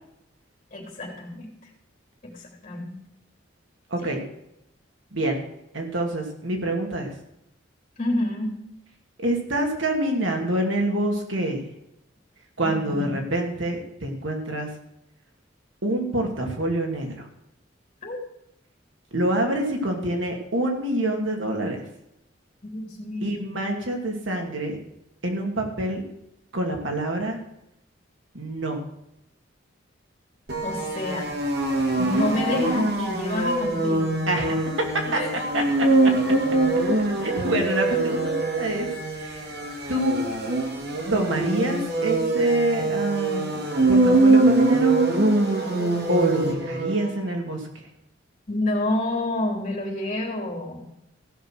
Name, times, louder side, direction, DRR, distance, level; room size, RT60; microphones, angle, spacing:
voice 1, 0.7-1.5 2.2-2.9 4.0-4.1 8.0-8.5 12.6-13.1 18.0-18.2 22.6-23.4 30.6-31.3 32.0-34.2 35.1-35.3 48.5-50.9, left 1 dB, 35° left, -1 dB, 3.4 m, -28 dB
voice 2, 5.1-5.4 5.7-7.1 9.2-11.6 12.6-14.7 15.8-17.3 19.1-21.8 23.2-24.8 25.2-26.0 26.5-27.4 28.3-28.8 34.3-34.9 35.1-35.2 35.5-35.6 37.2-38.9 39.1-39.5 39.9-40.2 41.1-43.6 43.9-45.0 46.1-47.7, right 1 dB, 80° right, 2 dB, 2.6 m, -26 dB
sound 1, 30.5-47.1, right 2 dB, 55° right, 2.2 m, -23 dB
15.0 x 6.5 x 6.4 m, 0.81 s
head